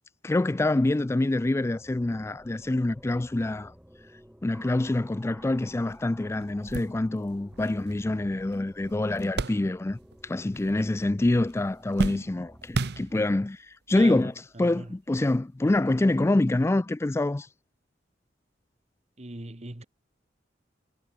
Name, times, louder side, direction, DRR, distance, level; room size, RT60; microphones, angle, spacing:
voice 1, 0.2-3.7 4.4-17.5, left 2 dB, 15° left, 0.3 m, -26 dB
sound 1, 1.2-12.7, equal, 5° right, 1.9 m, -53 dB
sound 2, 5.9-6.0 6.4-10.2 10.5-11.2 11.5-13.5 14.3-14.4 15.7-15.8, right 3 dB, 60° right, 0.8 m, -35 dB
voice 2, 13.9-14.3 14.6-14.9 19.2-19.8, right 2 dB, 35° right, 1.4 m, -39 dB
head